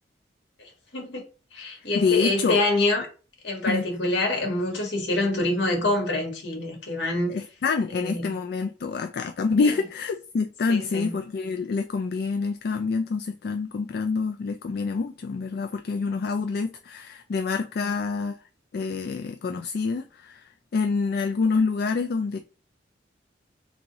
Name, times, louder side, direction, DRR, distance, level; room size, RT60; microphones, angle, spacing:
voice 1, 0.9-1.2 1.5-3.1 3.4-7.3 7.9-8.3 9.6-9.7 10.7-11.2 17.8-17.9, left 2 dB, 80° left, 1.6 m, -26 dB
voice 2, 1.9-2.6 3.7-3.8 7.3-18.4 18.7-22.5, left 4 dB, 60° left, 0.3 m, -27 dB
3.5 x 3.1 x 3.9 m
head